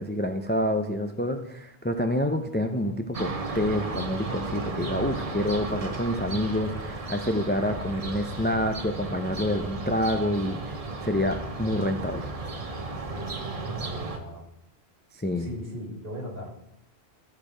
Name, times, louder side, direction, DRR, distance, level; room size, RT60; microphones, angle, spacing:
voice 1, 0.0-10.7 11.0-12.3 15.1-15.5, left 1 dB, 15° left, 6 dB, 0.4 m, -27 dB
sound 1, 3.1-14.2, right 3 dB, 35° right, 0.9 m, -34 dB
voice 2, 13.0-14.4 15.3-16.6, equal, 60° right, -1 dB, 2.5 m, -39 dB
13.0 x 4.5 x 4.9 m, 0.79 s
omnidirectional pair, 1.1 m